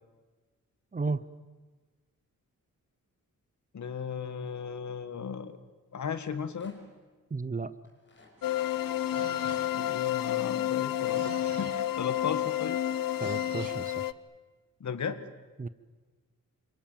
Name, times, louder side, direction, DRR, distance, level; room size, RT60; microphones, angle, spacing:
voice 1, 0.9-1.2 7.3-7.7 13.2-14.1 15.6-15.7, right 4 dB, 25° right, 15 dB, 0.7 m, -33 dB
voice 2, 3.7-5.6 5.9-6.8 9.7-12.8 14.8-15.3, left 6 dB, 55° left, 11 dB, 1.7 m, -36 dB
Rattle, 6.3-7.0 7.8-8.4 9.3-11.2 11.8-12.3, left 2 dB, 35° left, 5.7 m, -59 dB
sound 1, 8.4-14.1, left 12 dB, 75° left, 0.8 m, -30 dB
sound 2, 8.4-10.0 10.7-11.9 12.9-13.9, right 8 dB, 85° right, 1.7 m, -48 dB
28.5 x 26.5 x 7.5 m, 1.3 s
wide cardioid pair, 145°, 34 cm